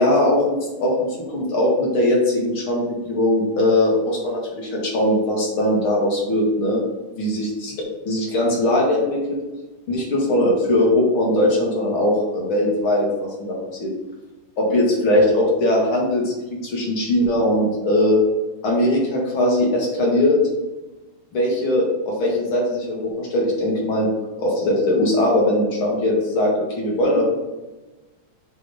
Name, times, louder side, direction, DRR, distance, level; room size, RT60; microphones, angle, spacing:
voice 1, 0.0-6.8 7.2-7.7 8.1-9.2 9.9-13.9 14.6-16.3 16.6-18.2 18.6-20.4 21.3-24.1 24.4-26.5 26.8-27.2, left 1 dB, 75° left, -3 dB, 2.6 m, -20 dB
6.7 x 3.7 x 5.0 m, 1.1 s
omnidirectional pair, 2.3 m